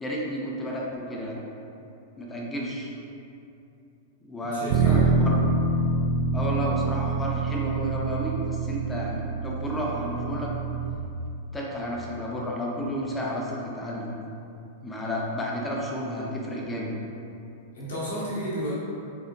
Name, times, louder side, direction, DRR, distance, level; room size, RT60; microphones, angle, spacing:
voice 1, 0.0-1.4 2.2-2.9 4.3-5.5 6.3-10.5 11.5-14.2 14.8-16.9, equal, 15° left, -3 dB, 0.6 m, -31 dB
voice 2, 4.4-5.0 17.7-18.7, equal, 70° left, -8 dB, 1.3 m, -32 dB
Bass guitar, 4.7-11.0, right 3 dB, 50° right, 0.3 m, -26 dB
4.2 x 2.6 x 2.6 m, 2.7 s
figure-of-eight pair, 100°, 0 cm